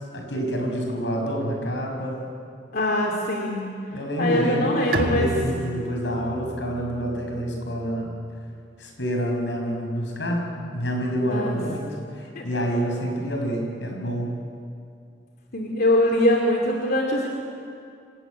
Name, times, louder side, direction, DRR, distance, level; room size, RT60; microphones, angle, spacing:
voice 1, 0.1-2.3 3.9-8.1 8.8-10.5 10.7-11.9 12.1-14.3, equal, 90° left, 1 dB, 6.1 m, -27 dB
voice 2, 2.7-3.7 4.2-5.3 11.3-11.6 12.4-12.5 15.5-17.3, left 1 dB, 60° left, 0 dB, 2.6 m, -22 dB
Bowed string instrument, 4.9-8.4, right 1 dB, 60° right, 1.7 m, -32 dB
25.0 x 17.0 x 9.5 m, 2.4 s
head